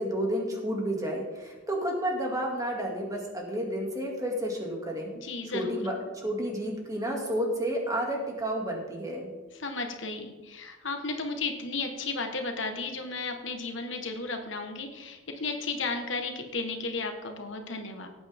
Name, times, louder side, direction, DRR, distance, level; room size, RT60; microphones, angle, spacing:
voice 1, 0.0-5.1 5.5-9.3, equal, 15° right, 0 dB, 2.4 m, -31 dB
voice 2, 5.1-5.8 9.5-18.1, left 3 dB, 65° left, 5 dB, 1.4 m, -34 dB
17.5 x 8.6 x 3.6 m, 1.2 s
head